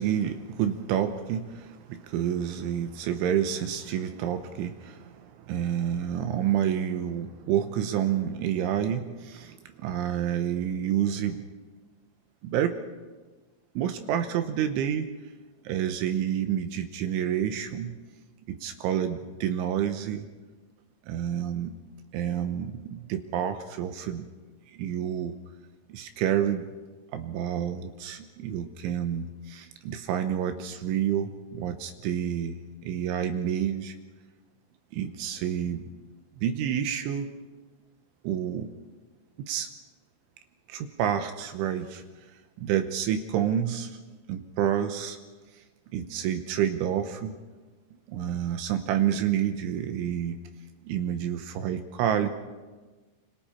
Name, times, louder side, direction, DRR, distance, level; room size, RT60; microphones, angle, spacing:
voice 1, 0.0-11.5 12.4-12.8 13.8-15.1 15.6-18.0 18.5-20.3 21.1-21.8 22.1-24.3 24.7-25.4 25.9-26.7 27.1-33.9 34.9-35.9 36.4-37.3 38.2-38.7 39.5-39.7 40.7-42.0 42.6-44.0 44.3-45.2 45.9-47.3 48.1-50.4 50.9-52.3, right 9 dB, 75° right, 8 dB, 3.3 m, -29 dB
28.0 x 25.5 x 4.4 m, 1.3 s
omnidirectional pair, 5.8 m